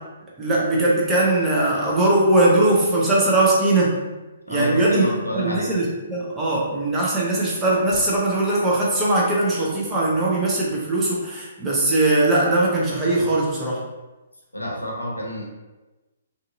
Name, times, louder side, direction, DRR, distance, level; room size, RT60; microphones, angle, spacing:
voice 1, 0.4-4.0 4.5-13.8, right 2 dB, 15° right, -5 dB, 0.7 m, -20 dB
voice 2, 4.5-5.7 14.5-15.4, equal, 90° left, -2 dB, 0.7 m, -28 dB
2.7 x 2.5 x 2.6 m, 1.1 s
figure-of-eight pair, 125°, 0 cm